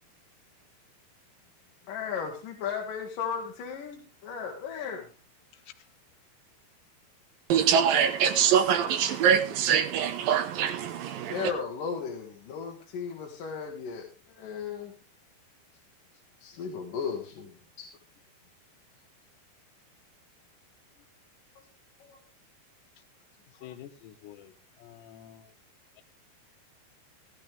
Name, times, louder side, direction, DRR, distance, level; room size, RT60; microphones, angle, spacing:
voice 1, 1.9-5.1 11.3-14.9 16.4-17.9 22.0-22.2 23.6-23.7, left 6 dB, 60° left, 2.8 m, -36 dB
voice 2, 7.5-11.5, right 8 dB, 70° right, 2.5 m, -24 dB
voice 3, 23.6-24.5 24.8-25.5, left 11 dB, 85° left, 3.2 m, -47 dB
14.5 x 13.0 x 3.4 m
omnidirectional pair, 4.8 m